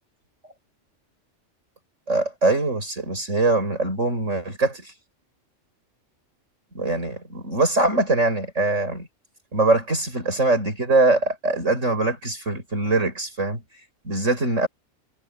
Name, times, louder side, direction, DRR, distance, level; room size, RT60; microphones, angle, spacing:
voice 1, 2.1-4.9 6.7-9.1 9.5-13.6 14.0-14.7, right 2 dB, 85° right, 6.8 m, -22 dB
omnidirectional pair, 1.3 m